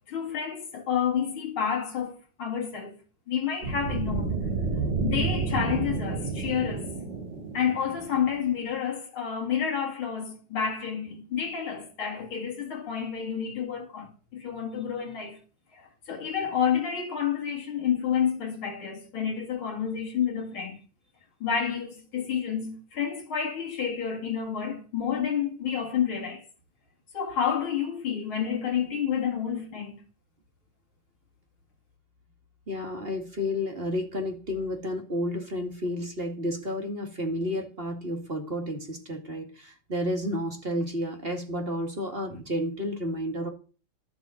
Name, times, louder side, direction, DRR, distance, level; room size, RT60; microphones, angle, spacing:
voice 1, 0.1-3.0 3.3-4.3 5.0-6.9 7.5-15.4 15.7-20.8 21.4-26.4 27.1-30.0, left 8 dB, 90° left, 3.1 m, -29 dB
sound 1, 3.6-8.6, right 4 dB, 55° right, 4.2 m, -30 dB
voice 2, 32.7-43.5, left 1 dB, 30° right, 2.4 m, -31 dB
12.0 x 7.9 x 6.2 m
omnidirectional pair, 2.2 m